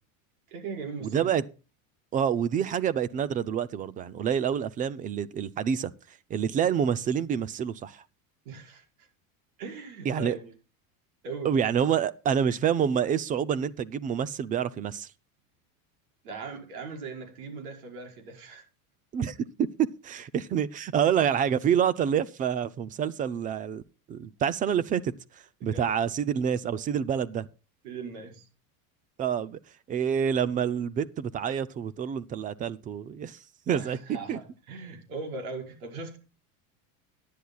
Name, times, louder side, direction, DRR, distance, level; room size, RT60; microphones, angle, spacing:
voice 1, 0.5-1.4 8.5-9.1 9.6-10.5 11.2-11.5 16.2-18.6 25.7-25.9 27.8-28.5 33.7-36.2, right 4 dB, 80° right, 5.3 m, -39 dB
voice 2, 1.0-1.4 2.1-5.9 6.3-8.0 10.0-10.4 11.4-15.1 19.1-23.8 24.1-25.1 25.6-27.5 29.2-29.6 29.9-33.4 33.7-34.0 34.3-34.4, right 8 dB, 20° right, 0.4 m, -27 dB
17.5 x 10.5 x 2.3 m
supercardioid pair, 150°, 42 cm